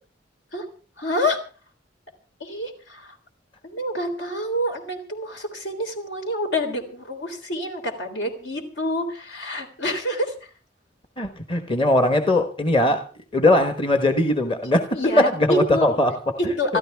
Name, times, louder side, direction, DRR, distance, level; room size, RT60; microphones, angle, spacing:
voice 1, 1.0-1.4 2.4-3.1 3.6-10.3 14.9-15.9 16.6-16.8, left 1 dB, 75° left, 3.6 m, -27 dB
voice 2, 11.2-16.8, left 1 dB, 30° left, 1.2 m, -21 dB
26.5 x 13.0 x 3.5 m
head